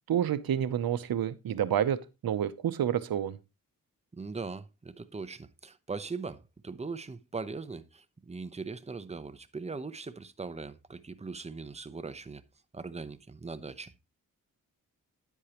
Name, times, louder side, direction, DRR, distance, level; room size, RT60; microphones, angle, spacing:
voice 1, 0.1-2.0 2.2-3.4, right 9 dB, 90° right, 0.8 m, -29 dB
voice 2, 4.1-12.4 12.7-14.0, right 4 dB, 20° right, 0.8 m, -40 dB
9.8 x 8.3 x 3.0 m
cardioid pair, 70°, 35 cm